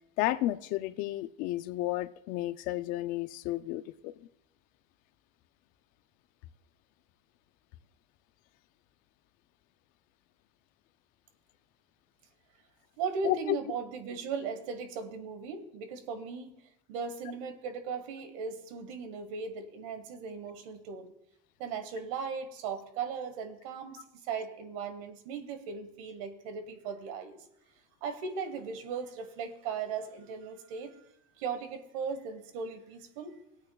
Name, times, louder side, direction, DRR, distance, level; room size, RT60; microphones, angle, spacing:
voice 1, 0.2-4.1 13.2-13.6, left 15 dB, 55° left, 0.5 m, -32 dB
voice 2, 13.0-16.6 16.9-21.1 21.6-27.4 28.0-31.1 31.3-33.4, right 5 dB, 80° right, 1.3 m, -37 dB
19.0 x 8.8 x 2.3 m
cardioid pair, 150°, 17 cm